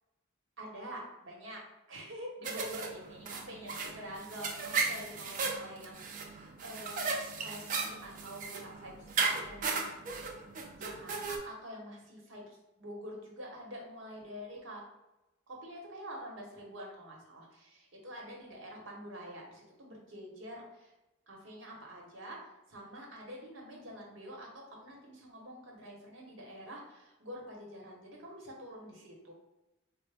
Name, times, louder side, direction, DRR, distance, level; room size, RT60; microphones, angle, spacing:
voice 1, 0.6-1.6 1.9-7.0 7.3-10.0 10.7-12.4 12.8-14.8 15.5-20.9 21.3-22.4 22.7-29.3, equal, 75° right, -1 dB, 0.9 m, -47 dB
sound 1, 2.4-11.4, right 4 dB, 40° right, 0.4 m, -36 dB
3.7 x 2.0 x 3.3 m, 0.96 s
head